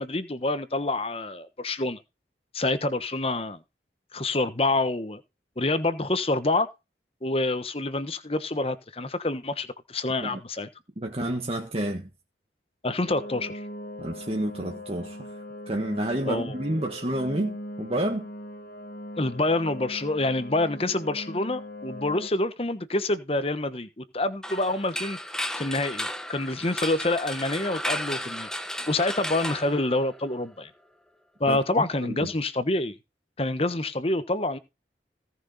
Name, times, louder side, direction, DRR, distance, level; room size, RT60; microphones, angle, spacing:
voice 1, 0.0-2.0 2.5-3.6 4.1-5.2 5.6-6.7 7.2-10.7 12.8-13.6 16.2-16.5 19.2-25.2 25.6-28.5 28.9-30.7 31.4-32.9 33.4-34.6, left 2 dB, 35° left, 1.2 m, -27 dB
voice 2, 11.0-12.1 14.0-15.3 15.7-18.3 31.5-31.6 32.0-32.3, right 1 dB, 35° right, 1.7 m, -29 dB
sound 1, 13.1-22.3, equal, 55° left, 1.7 m, -40 dB
sound 2, 24.4-30.4, equal, 5° left, 1.0 m, -34 dB
17.5 x 6.2 x 4.1 m
head